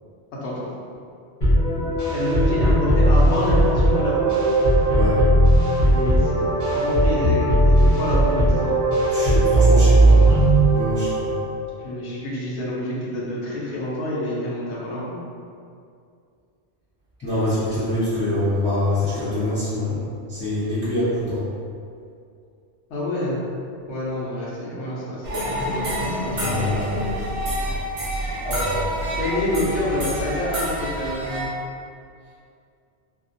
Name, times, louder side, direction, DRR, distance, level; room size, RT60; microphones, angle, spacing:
voice 1, 0.4-0.7 1.7-4.3 5.9-6.5 6.7-8.9 11.8-15.2 22.9-23.4 23.9-26.6 29.1-31.5, left 1 dB, 85° left, -6 dB, 1.0 m, -28 dB
sound 1, 1.4-11.5, right 1 dB, 45° left, 1.0 m, -17 dB
voice 2, 9.1-10.3 10.7-11.3 17.2-20.0 20.3-21.4 26.3-26.8 28.4-28.8, left 1 dB, 10° left, -14 dB, 0.7 m, -25 dB
sound 2, 25.2-31.5, equal, 40° right, 0.6 m, -27 dB
2.5 x 2.1 x 2.5 m, 2.4 s
omnidirectional pair, 1.1 m